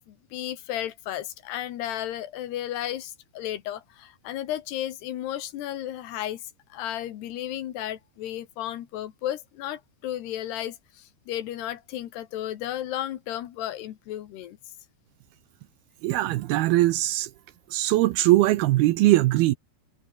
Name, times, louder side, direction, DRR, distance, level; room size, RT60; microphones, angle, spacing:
voice 1, 0.1-6.4 6.7-14.6, left 12 dB, 75° left, 3.5 m, -33 dB
voice 2, 16.0-17.3 17.7-19.5, right 16 dB, 80° right, 2.5 m, -21 dB
omnidirectional pair, 4.8 m